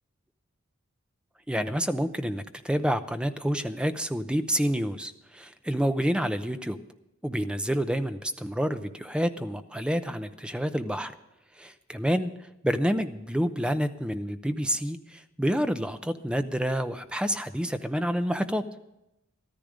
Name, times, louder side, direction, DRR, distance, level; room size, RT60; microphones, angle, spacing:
voice 1, 1.5-6.8 7.2-11.1 11.6-18.6, equal, 5° right, 9 dB, 0.7 m, -28 dB
14.0 x 13.5 x 5.1 m, 0.89 s
head